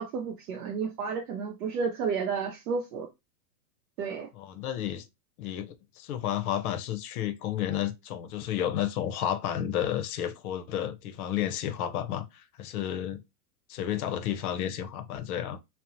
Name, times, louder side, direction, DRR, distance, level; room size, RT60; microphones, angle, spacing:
voice 1, 0.0-3.1 4.0-4.3, right 5 dB, 70° right, 0.6 m, -31 dB
voice 2, 4.3-5.1 5.4-13.2 13.7-15.6, left 10 dB, 65° left, 0.6 m, -31 dB
2.8 x 2.0 x 2.5 m
supercardioid pair, 145°, 47 cm